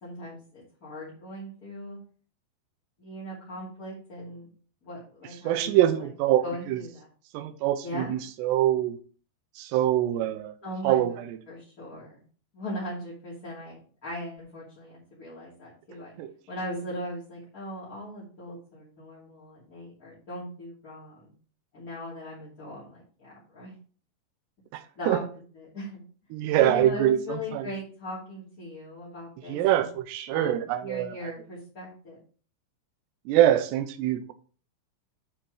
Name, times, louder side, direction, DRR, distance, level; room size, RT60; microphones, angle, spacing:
voice 1, 0.0-2.0 3.0-4.5 4.8-6.1 6.4-7.1 7.8-8.2 10.6-11.0 11.5-12.2 12.5-16.1 16.5-21.3 21.7-23.7 24.9-25.2 25.5-26.0 26.6-29.9 30.3-32.2, left 1 dB, 25° left, -9 dB, 2.3 m, -39 dB
voice 2, 5.4-6.8 7.3-9.0 9.6-10.5 10.8-11.4 16.2-16.3 24.7-25.2 26.3-27.7 29.5-31.2 33.3-34.3, right 12 dB, 80° right, 9 dB, 2.8 m, -24 dB
9.0 x 5.1 x 4.7 m, 0.41 s
omnidirectional pair, 5.2 m